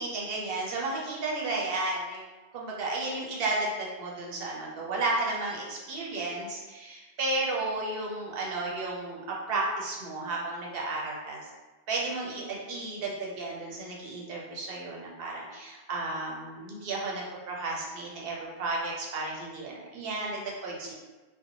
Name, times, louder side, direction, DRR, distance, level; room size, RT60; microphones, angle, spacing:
voice 1, 0.0-2.2 2.5-9.2 9.5-11.4 11.9-20.9, right 2 dB, 70° right, -3 dB, 0.8 m, -33 dB
2.6 x 2.1 x 2.7 m, 1.2 s
omnidirectional pair, 1.1 m